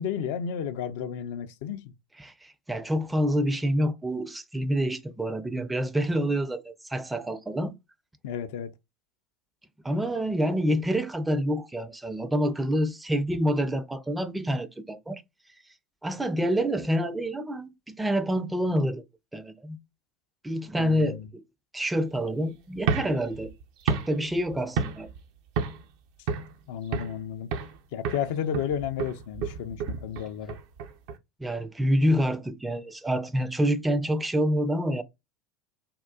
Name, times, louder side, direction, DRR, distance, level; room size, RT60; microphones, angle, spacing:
voice 1, 0.0-1.9 8.2-8.7 20.8-21.3 26.7-27.5 27.9-30.6, left 8 dB, 65° left, 0.4 m, -32 dB
voice 2, 2.2-7.7 9.8-15.2 16.0-19.0 19.3-19.8 20.4-21.4 21.7-23.5 23.8-25.1 31.4-35.0, equal, 10° right, 0.4 m, -27 dB
sound 1, 22.8-25.2 25.6-25.9 26.3-27.2 27.5-27.8 28.0-31.2, right 5 dB, 60° right, 0.6 m, -31 dB
3.6 x 2.3 x 2.2 m
figure-of-eight pair, 75°, 0 cm